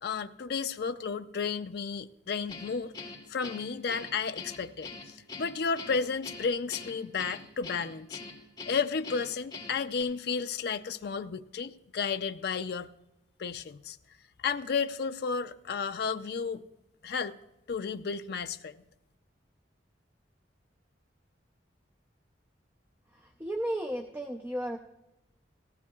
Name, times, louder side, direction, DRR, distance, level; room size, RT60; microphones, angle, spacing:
voice 1, 0.0-2.9 3.3-4.9 5.4-8.2 8.7-12.9 13.4-14.0 14.4-16.6 17.0-17.3 17.7-18.7, left 5 dB, 60° left, 9 dB, 0.4 m, -32 dB
Guitar, 2.5-10.0, left 4 dB, 20° left, 2.6 m, -44 dB
voice 2, 23.1-24.8, right 1 dB, 10° right, 3 dB, 0.6 m, -34 dB
17.5 x 15.5 x 2.4 m, 0.91 s
head